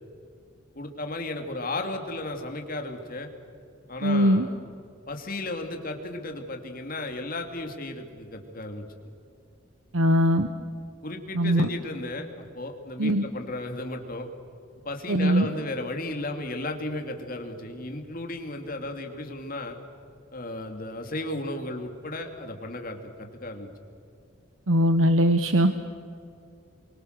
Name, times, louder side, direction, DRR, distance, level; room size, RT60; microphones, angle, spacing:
voice 1, 0.7-3.3 3.9-4.5 5.1-8.8 11.0-14.3 14.8-19.8 20.3-23.7, left 2 dB, 45° left, 4 dB, 2.8 m, -34 dB
voice 2, 4.0-4.5 9.9-10.5 11.3-11.7 13.0-13.2 15.1-15.5 24.7-25.7, equal, 85° right, 8 dB, 1.1 m, -21 dB
29.5 x 24.0 x 6.8 m, 2.5 s
head